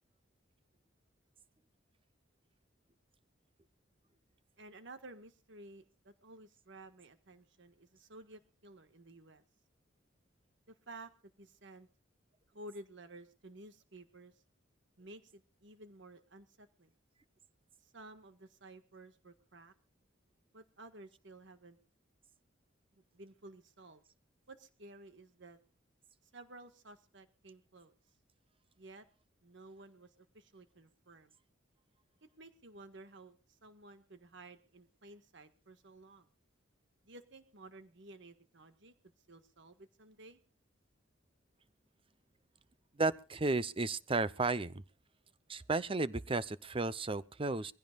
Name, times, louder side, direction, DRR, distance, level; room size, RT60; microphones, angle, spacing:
voice 1, 4.6-9.4 10.7-11.1 11.4-11.9 12.5-14.3 15.0-16.9 17.8-19.7 20.5-21.8 23.1-24.0 24.5-25.6 26.3-27.9 28.8-29.0 29.4-31.3 32.4-36.3 37.0-38.9 39.3-40.4, right 2 dB, 70° right, 1.6 m, -54 dB
voice 2, 43.0-44.8 45.5-47.7, right 3 dB, 30° right, 0.7 m, -33 dB
23.5 x 16.0 x 2.4 m
head